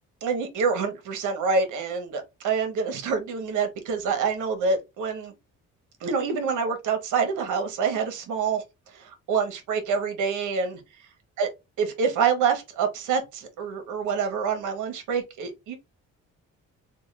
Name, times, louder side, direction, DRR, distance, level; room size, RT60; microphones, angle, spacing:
voice 1, 0.2-5.3 6.0-8.6 8.9-10.8 11.4-11.5 11.8-15.7, right 5 dB, 80° right, 1.1 m, -26 dB
3.5 x 2.3 x 3.2 m
cardioid pair, 90°, 30 cm